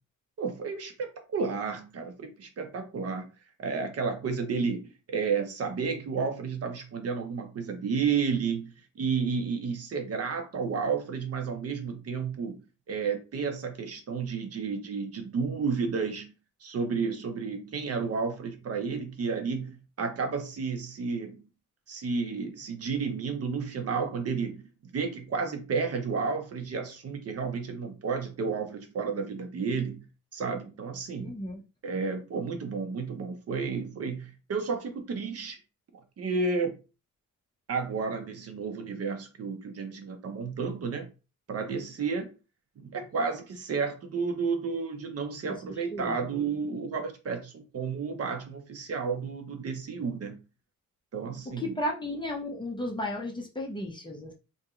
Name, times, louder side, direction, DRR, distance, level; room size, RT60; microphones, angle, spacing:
voice 1, 0.4-3.3 3.6-4.8 5.1-12.6 12.9-16.3 16.6-21.4 21.9-30.0 30.3-31.3 31.8-35.6 36.2-36.7 37.7-41.1 41.5-42.3 42.8-50.4 51.1-51.8, right 5 dB, 50° right, 0.8 m, -32 dB
voice 2, 31.2-31.6 45.7-46.2 51.6-54.3, left 1 dB, 15° left, 0.7 m, -34 dB
2.9 x 2.7 x 3.6 m
cardioid pair, 140°, 31 cm